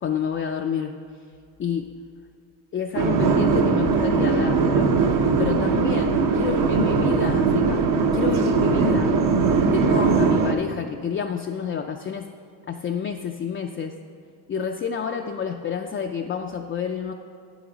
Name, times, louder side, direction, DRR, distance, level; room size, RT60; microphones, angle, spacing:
voice 1, 0.0-0.9 1.6-1.9 2.7-5.0 5.4-7.9 8.1-9.1 9.7-12.3 12.7-13.9 14.5-17.1, left 7 dB, 30° left, 3 dB, 0.4 m, -29 dB
sound 1, 2.9-10.5, right 4 dB, 50° right, 0.8 m, -20 dB
9.4 x 8.0 x 3.9 m, 2.4 s
cardioid pair, 125°, 41 cm